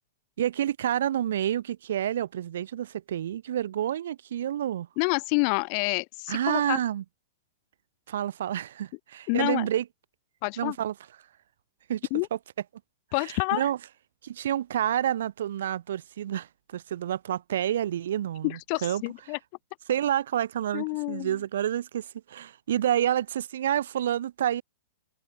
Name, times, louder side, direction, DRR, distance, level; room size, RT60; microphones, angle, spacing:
voice 1, 0.4-4.9 6.3-7.0 8.1-9.9 10.6-10.9 11.9-12.4 13.2-13.8 14.2-19.0 19.9-24.6, right 11 dB, 75° right, 0.9 m, -29 dB
voice 2, 5.0-6.8 9.3-9.7 10.4-10.8 12.1-12.3 13.1-13.6 18.4-19.4 20.7-21.4, left 40 dB or more, 40° left, 0.7 m, -28 dB
open air
hypercardioid pair, 145°, 0 cm